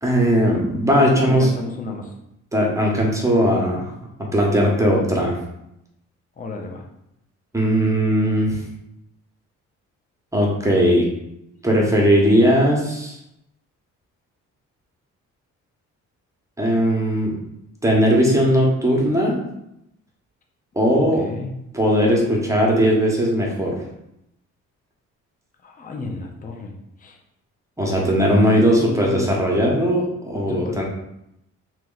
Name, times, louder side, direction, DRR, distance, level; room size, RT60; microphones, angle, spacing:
voice 1, 0.0-1.5 2.5-3.9 4.3-5.4 7.5-8.6 10.3-11.1 11.6-13.2 16.6-17.3 17.8-19.4 20.7-21.2 21.7-23.8 27.8-30.8, equal, 10° right, -2 dB, 1.0 m, -18 dB
voice 2, 1.2-2.1 6.4-6.8 21.1-21.6 25.6-27.2 28.5-29.4 30.5-30.8, left 3 dB, 30° left, 2 dB, 0.6 m, -32 dB
3.0 x 3.0 x 3.9 m, 0.82 s
cardioid pair, 90°, 30 cm